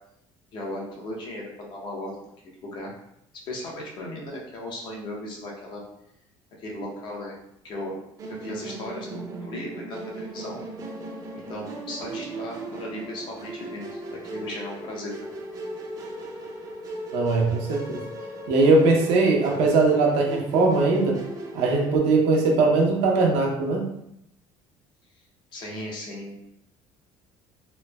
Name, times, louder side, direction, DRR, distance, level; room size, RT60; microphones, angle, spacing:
voice 1, 0.5-2.3 2.6-2.9 3.5-5.8 6.6-7.3 7.6-10.6 11.4-14.0 14.3-15.4 25.5-26.3, left 1 dB, 50° left, -2 dB, 0.7 m, -36 dB
Musical instrument, 8.2-22.0, right 2 dB, 35° right, 0.4 m, -37 dB
voice 2, 17.1-18.0 18.5-21.2 21.5-23.9, right 3 dB, 85° right, 0 dB, 0.6 m, -20 dB
3.0 x 2.0 x 2.2 m, 0.77 s
cardioid pair, 140°, 10 cm